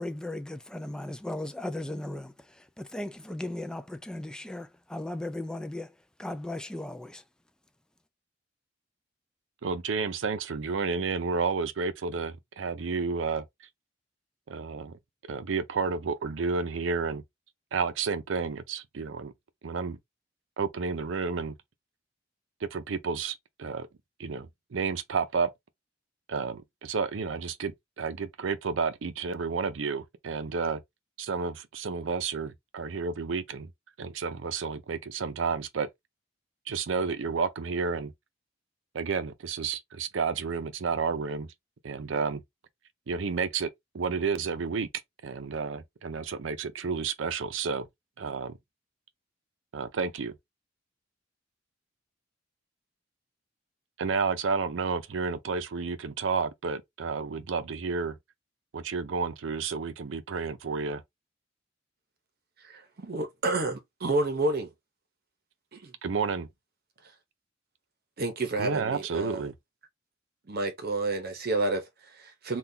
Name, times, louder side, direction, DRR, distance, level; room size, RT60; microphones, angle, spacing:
voice 1, 0.0-7.2, left 1 dB, 5° left, 0.3 m, -37 dB
voice 2, 9.6-13.4 14.5-15.0 15.3-17.2 17.7-19.3 19.6-20.0 20.6-21.5 22.6-23.9 24.2-25.5 26.3-30.8 31.2-33.7 34.0-35.9 36.7-38.1 38.9-41.5 41.8-42.4 43.1-43.7 43.9-44.9 45.2-47.9 48.2-48.6 49.7-50.4 54.0-58.2 58.7-61.0 66.0-66.5 68.6-69.5, right 5 dB, 90° right, 0.5 m, -31 dB
voice 3, 62.6-64.7 65.7-65.9 68.2-69.4 70.5-72.6, right 2 dB, 55° right, 0.8 m, -30 dB
3.7 x 2.3 x 2.7 m
head